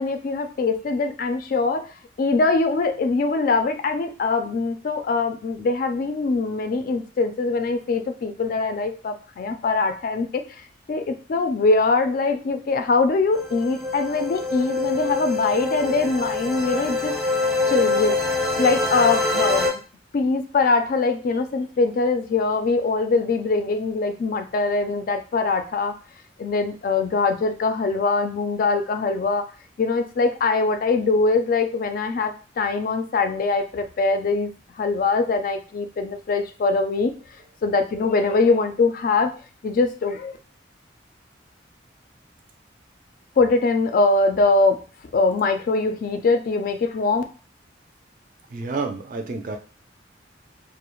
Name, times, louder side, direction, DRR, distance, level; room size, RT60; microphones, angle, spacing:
voice 1, 0.0-1.9 2.2-10.4 10.9-17.1 17.7-18.2 18.6-19.8 20.1-26.0 26.4-29.4 29.8-34.5 34.8-37.1 37.6-39.3 39.6-40.4 43.4-44.8 45.1-47.2, left 3 dB, 50° left, 7 dB, 0.3 m, -22 dB
sound 1, 13.3-19.7, left 3 dB, ahead, 0.6 m, -25 dB
voice 2, 48.5-49.6, right 3 dB, 45° right, 6 dB, 0.4 m, -29 dB
2.3 x 2.0 x 3.0 m, 0.36 s
head